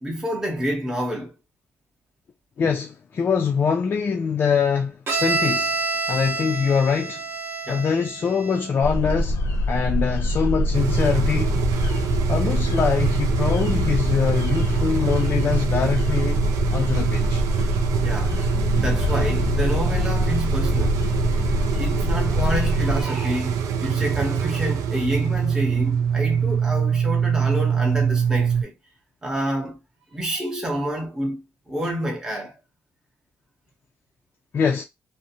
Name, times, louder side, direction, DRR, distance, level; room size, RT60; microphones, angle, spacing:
voice 1, 0.0-1.3 7.7-7.9 18.0-18.4 18.7-21.0 21.8-28.7 29.2-29.8 30.1-32.6, equal, 10° right, 0.7 m, -28 dB
voice 2, 2.6-5.8 6.1-7.2 7.7-9.4 9.7-11.7 12.3-16.5 16.7-17.4 21.3-21.4 34.5-34.8, left 6 dB, 35° left, 0.3 m, -23 dB
Bowed string instrument, 5.1-8.8, right 3 dB, 45° right, 0.6 m, -28 dB
sound 1, 8.8-23.0, left 2 dB, 75° left, 0.6 m, -25 dB
sound 2, 10.7-28.6, right 7 dB, 90° right, 0.3 m, -24 dB
2.5 x 2.0 x 2.7 m
cardioid pair, 145°, 5 cm